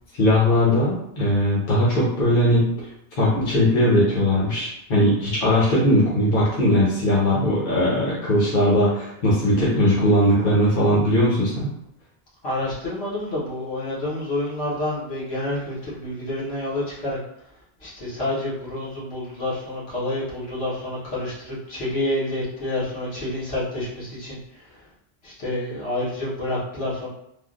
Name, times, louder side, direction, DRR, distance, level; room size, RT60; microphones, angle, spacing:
voice 1, 0.1-2.7 3.2-11.7, left 1 dB, 60° left, -7 dB, 1.1 m, -19 dB
voice 2, 12.4-17.2 17.8-24.4 25.2-27.1, left 1 dB, 80° left, -8 dB, 1.4 m, -28 dB
3.6 x 2.3 x 2.4 m, 0.78 s
omnidirectional pair, 1.1 m